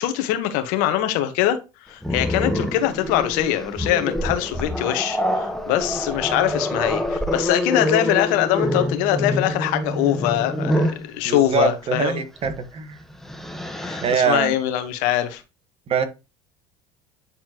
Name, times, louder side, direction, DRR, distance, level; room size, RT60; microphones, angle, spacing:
voice 1, 0.0-1.6 1.9-12.2 13.8-15.4, left 13 dB, 75° left, 1.4 m, -23 dB
Growling, 2.0-11.1 12.4-12.6 13.0-14.2, left 1 dB, ahead, 1.3 m, -26 dB
voice 2, 11.2-13.0 14.0-14.5 15.9-16.0, right 6 dB, 45° right, 1.6 m, -23 dB
9.4 x 4.3 x 3.0 m
supercardioid pair, 85°, 14 cm